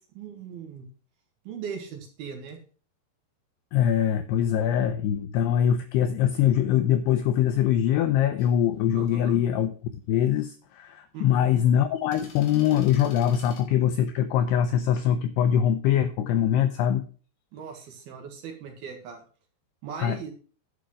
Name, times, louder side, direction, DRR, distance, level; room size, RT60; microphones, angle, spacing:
voice 1, 0.1-0.9 1.4-2.6 8.9-9.4 11.1-11.6 17.5-19.2 19.8-20.3, right 6 dB, 60° right, 2 dB, 3.3 m, -39 dB
voice 2, 3.7-9.7 10.1-17.1 20.0-20.2, left 10 dB, 90° left, 9 dB, 2.3 m, -23 dB
sound 1, 8.4-13.6, left 5 dB, 60° left, 3.3 m, -51 dB
11.5 x 5.3 x 6.2 m, 0.41 s
omnidirectional pair, 5.5 m